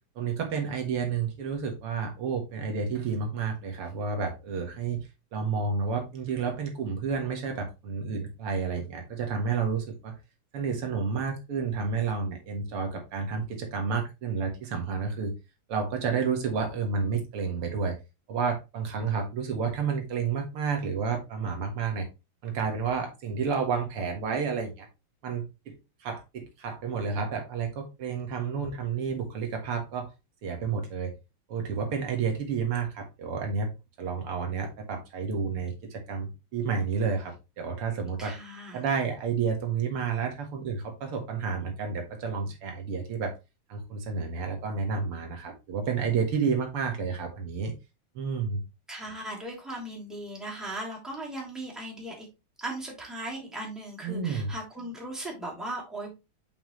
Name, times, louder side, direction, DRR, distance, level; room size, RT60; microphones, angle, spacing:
voice 1, 0.2-10.2 10.5-15.3 15.7-18.0 18.3-22.1 22.4-24.9 25.2-30.1 30.4-31.1 31.5-33.7 34.0-38.4 38.7-43.3 43.7-47.7 48.2-48.6 54.0-54.5, right 5 dB, 85° right, 3 dB, 2.5 m, -30 dB
voice 2, 38.2-38.8 48.9-52.3 52.6-56.1, right 1 dB, ahead, -3 dB, 2.6 m, -38 dB
7.0 x 5.6 x 3.1 m, 0.25 s
omnidirectional pair, 2.4 m